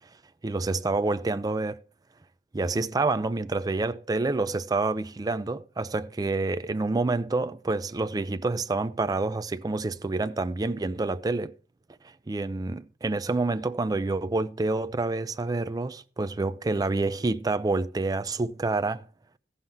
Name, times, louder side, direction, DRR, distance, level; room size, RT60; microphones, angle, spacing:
voice 1, 0.4-1.8 2.5-11.5 12.3-19.1, right 3 dB, 20° right, 0.4 m, -28 dB
14.5 x 5.6 x 4.5 m
head